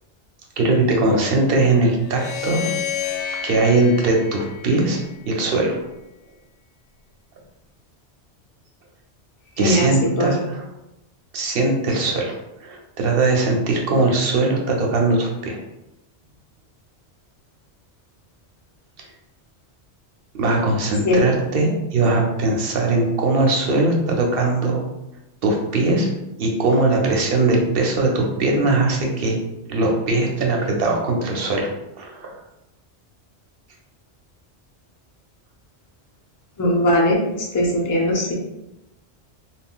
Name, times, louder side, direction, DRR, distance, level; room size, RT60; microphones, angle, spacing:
voice 1, 0.6-2.7 3.4-5.8 9.6-10.7 11.3-12.4 12.6-15.6 20.3-24.8 25.4-26.1 26.4-29.4 29.7-31.7 32.0-32.3, right 2 dB, 60° right, 0 dB, 0.8 m, -20 dB
sound 1, 2.0-5.3, left 9 dB, 80° left, 0.9 m, -30 dB
voice 2, 9.6-9.9 10.2-10.3 21.0-21.2 36.6-37.2 37.5-38.3, left 1 dB, 30° left, -2 dB, 0.3 m, -19 dB
3.7 x 2.1 x 2.2 m, 0.92 s
omnidirectional pair, 1.2 m